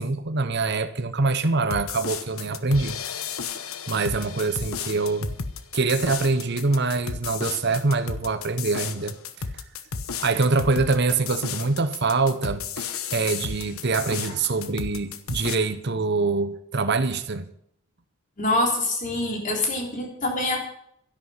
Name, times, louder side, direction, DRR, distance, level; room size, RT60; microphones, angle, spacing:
voice 1, 0.0-3.0 3.9-5.3 5.7-9.1 10.2-17.5, right 3 dB, 50° right, 11 dB, 0.9 m, -24 dB
sound 1, 1.7-15.6, left 6 dB, 80° left, 1.1 m, -33 dB
voice 2, 18.4-20.6, left 2 dB, 35° left, 1 dB, 3.6 m, -25 dB
12.0 x 11.0 x 5.8 m, 0.68 s
head